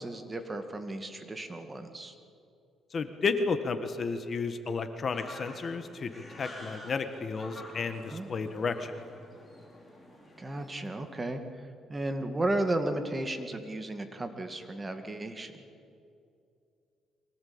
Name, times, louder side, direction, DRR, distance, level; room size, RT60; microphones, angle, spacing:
voice 1, 0.0-2.1 8.1-8.3 10.4-11.4 11.9-15.5, right 1 dB, 20° right, 7 dB, 2.1 m, -34 dB
voice 2, 2.9-8.9, left 4 dB, 40° left, 9 dB, 1.5 m, -32 dB
sound 1, 5.1-11.1, left 1 dB, 10° left, 4.9 m, -49 dB
24.0 x 18.0 x 8.8 m, 2.5 s
cardioid pair, 115°, 0 cm